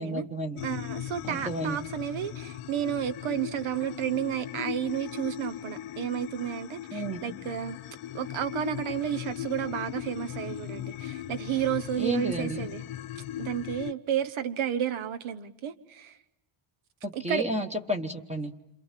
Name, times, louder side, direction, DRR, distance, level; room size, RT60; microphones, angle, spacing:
voice 1, 0.0-0.6 1.2-1.8 6.9-7.2 12.0-12.7 17.0-18.5, right 1 dB, 15° right, 5 dB, 1.1 m, -31 dB
sound 1, 0.6-13.9, left 12 dB, 85° left, 1.1 m, -38 dB
voice 2, 0.6-7.8 8.1-12.8 13.2-16.2 17.1-17.5, right 10 dB, 70° right, 10 dB, 1.2 m, -32 dB
28.5 x 27.0 x 7.5 m, 0.83 s
cardioid pair, 175°, 50 cm